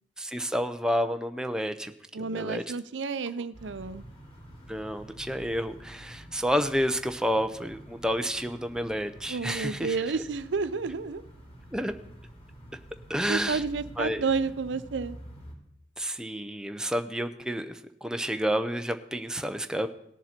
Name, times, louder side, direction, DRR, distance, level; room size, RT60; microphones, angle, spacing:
voice 1, 0.2-1.9 2.2-2.6 4.7-10.0 11.7-11.9 13.1-13.6 14.0-14.2 16.0-19.9, equal, 5° right, 7 dB, 0.6 m, -30 dB
voice 2, 2.1-4.0 9.3-11.2 13.3-15.2, right 4 dB, 85° right, 14 dB, 0.6 m, -31 dB
sound 1, 3.5-15.5, equal, 35° left, 2.8 m, -48 dB
18.0 x 6.8 x 4.4 m, 0.76 s
head